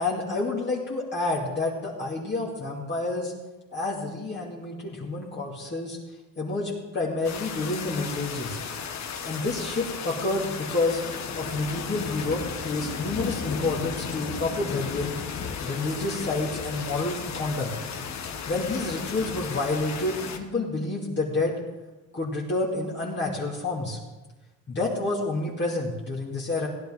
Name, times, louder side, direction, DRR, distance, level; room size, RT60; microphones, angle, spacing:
voice 1, 0.0-3.3 3.7-6.0 6.4-8.6 9.2-11.0 11.3-15.1 15.6-17.7 18.5-21.6 22.1-24.0 24.7-26.7, left 2 dB, 30° left, -4 dB, 2.4 m, -29 dB
sound 1, 7.2-20.4, left 6 dB, 50° left, 1.4 m, -34 dB
17.0 x 10.5 x 3.8 m, 1.1 s
cardioid pair, 100°, 36 cm